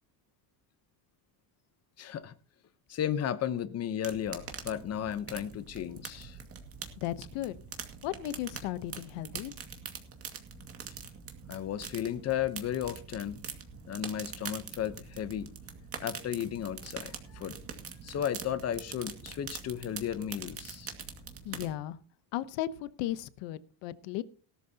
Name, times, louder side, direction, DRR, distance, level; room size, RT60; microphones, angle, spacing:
voice 1, 2.0-2.3 2.9-6.4 11.5-13.4 13.8-15.5 16.0-17.6 18.0-20.9, left 10 dB, 35° left, 0.9 m, -34 dB
sound 1, 4.0-21.7, right 6 dB, 30° right, 2.1 m, -44 dB
voice 2, 7.0-7.6 8.0-9.5 21.4-22.0 22.3-24.2, left 13 dB, 75° left, 1.1 m, -35 dB
18.0 x 12.5 x 2.9 m
cardioid pair, 160°, 43 cm